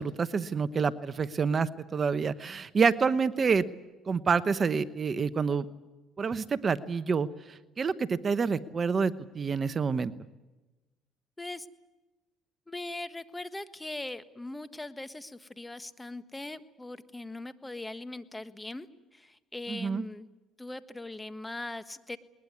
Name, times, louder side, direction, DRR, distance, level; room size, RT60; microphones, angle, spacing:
voice 1, 0.0-3.6 4.1-5.6 6.2-10.1 19.7-20.0, right 5 dB, 35° right, 14 dB, 1.0 m, -28 dB
voice 2, 12.7-18.9 19.1-20.3 20.6-22.2, left 2 dB, 15° left, 12 dB, 1.5 m, -40 dB
21.0 x 20.5 x 9.8 m, 1.1 s
supercardioid pair, 90°, 0 cm